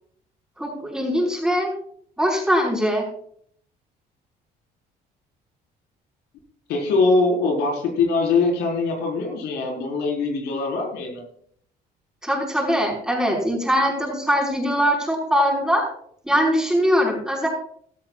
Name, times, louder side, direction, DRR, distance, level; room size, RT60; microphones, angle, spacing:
voice 1, 0.6-1.7 2.2-3.1 12.2-15.8 16.2-17.5, equal, 5° right, -1 dB, 5.0 m, -21 dB
voice 2, 6.7-11.2, left 3 dB, 85° left, 0 dB, 4.8 m, -22 dB
16.0 x 13.0 x 2.5 m, 0.63 s
cardioid pair, 110°, 17 cm